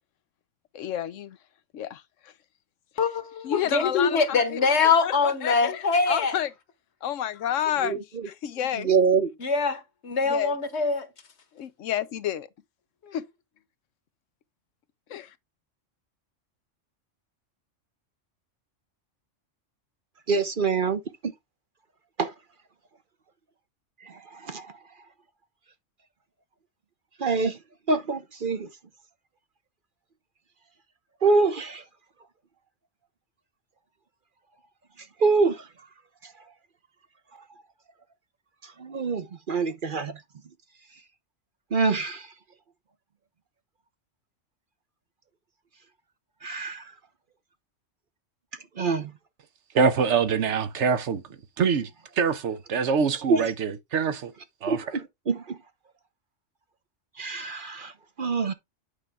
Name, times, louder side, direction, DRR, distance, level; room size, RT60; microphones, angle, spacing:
voice 1, 0.7-1.4 1.7-2.3 3.4-4.6 5.0-6.5 7.0-8.0 8.2-8.9 10.3-10.5 11.5-12.5 13.1-13.2 15.1-15.2, left 11 dB, 80° left, 1.0 m, -30 dB
voice 2, 3.0-6.4 9.4-11.1 13.0-13.2, left 5 dB, 60° left, 1.5 m, -24 dB
voice 3, 7.8-8.3 8.8-9.3 20.3-21.3 22.2-22.3 24.0-24.8 27.2-27.6 27.9-28.7 31.2-31.8 35.0-35.7 36.2-36.3 38.6-40.2 41.7-42.3 46.4-46.9 48.8-49.1 53.3-53.5 54.7-55.6 57.2-57.9 58.2-58.5, right 4 dB, 45° right, 0.9 m, -25 dB
voice 4, 49.7-51.2 51.6-51.9 52.1-54.3 54.6-54.8, right 6 dB, 70° right, 1.1 m, -24 dB
8.4 x 5.5 x 3.5 m
omnidirectional pair, 1.3 m